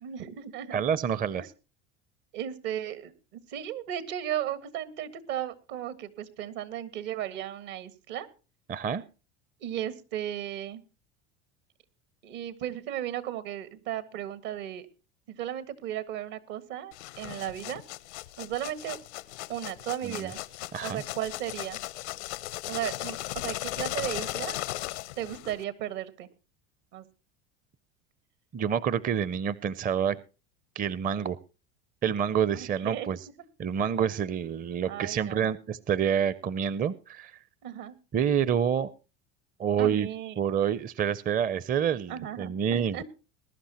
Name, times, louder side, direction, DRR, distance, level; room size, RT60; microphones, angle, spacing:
voice 1, 0.0-0.8 1.4-1.5 2.3-8.3 9.6-10.8 12.2-14.8 15.3-17.8 18.4-19.0 19.5-20.4 20.8-21.8 22.7-24.6 25.2-26.3 26.9-27.1 32.5-33.1 34.8-35.6 37.6-38.0 39.8-40.4 42.1-43.0, right 11 dB, 70° right, 14 dB, 1.7 m, -35 dB
voice 2, 0.7-1.4 8.7-9.0 20.0-20.3 20.7-21.0 28.5-30.2 30.8-31.4 32.0-33.2 33.6-37.4 38.1-38.9 39.6-40.1 40.4-43.0, right 8 dB, 25° right, 19 dB, 0.6 m, -28 dB
sound 1, 16.9-25.6, left 17 dB, 85° left, 0.8 m, -37 dB
20.5 x 11.5 x 2.9 m, 0.32 s
supercardioid pair, 95°, 33 cm